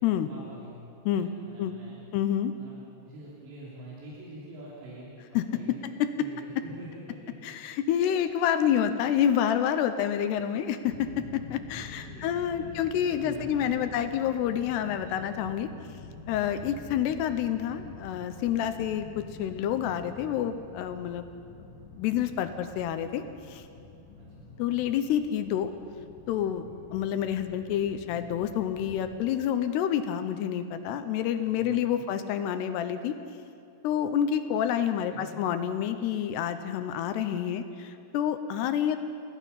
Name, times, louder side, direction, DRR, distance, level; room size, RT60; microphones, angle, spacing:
voice 1, 0.1-0.7 1.1-2.0 2.6-5.8 6.2-7.3 11.8-12.7 13.1-13.9 16.9-17.1 24.2-24.4 31.4-32.0 35.1-35.4, right 1 dB, 80° right, -6 dB, 5.5 m, -46 dB
voice 2, 2.1-2.5 5.3-5.4 6.0-6.1 7.4-15.7 16.3-21.3 21.9-23.6 24.6-25.7 26.3-33.2 33.8-39.0, left 9 dB, 80° left, 9 dB, 2.8 m, -28 dB
sound 1, 10.8-29.1, left 3 dB, 25° left, 6.2 m, -47 dB
29.0 x 16.5 x 5.8 m, 2.5 s
omnidirectional pair, 5.0 m